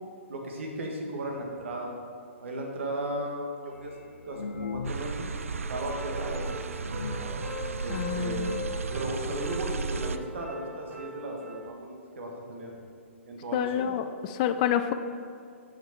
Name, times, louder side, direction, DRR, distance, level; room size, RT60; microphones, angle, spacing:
voice 1, 0.3-1.9 2.4-3.9 4.2-6.5 7.8-8.5 8.9-12.7 13.3-13.9, right 1 dB, 65° right, 1 dB, 1.6 m, -36 dB
sound 1, 3.7-5.4 5.7-5.8 6.3-6.4 6.7-7.4 8.2-8.3 8.5-8.6 8.9-9.2 10.0-10.1 10.4-10.5 11.1-11.2 11.5-11.6, left 3 dB, 75° left, 0.7 m, -38 dB
sound 2, 4.8-10.2, right 4 dB, 85° right, 0.4 m, -34 dB
sound 3, 5.6-11.7, left 1 dB, 15° right, 1.6 m, -40 dB
voice 2, 7.9-8.6 13.5-14.9, left 10 dB, 35° left, 10 dB, 0.4 m, -28 dB
7.2 x 5.9 x 4.5 m, 2.4 s
hypercardioid pair, 135°, 7 cm